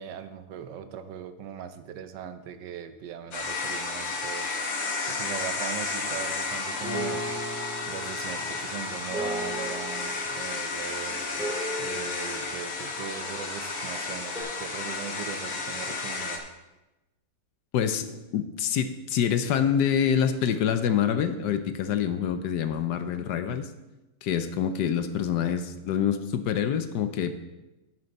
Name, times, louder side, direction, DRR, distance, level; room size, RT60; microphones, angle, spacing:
voice 1, 0.0-4.6 5.1-7.3 7.9-11.2 11.8-16.5, right 8 dB, 80° right, 10 dB, 1.4 m, -39 dB
sound 1, 3.3-16.4, left 3 dB, 60° left, 1.6 m, -32 dB
sound 2, 6.2-13.6 14.3-14.4, equal, ahead, 2.5 m, -37 dB
voice 2, 17.7-23.7 24.2-27.4, left 8 dB, 75° left, 9 dB, 1.3 m, -26 dB
10.5 x 7.8 x 4.2 m, 1.0 s
omnidirectional pair, 1.9 m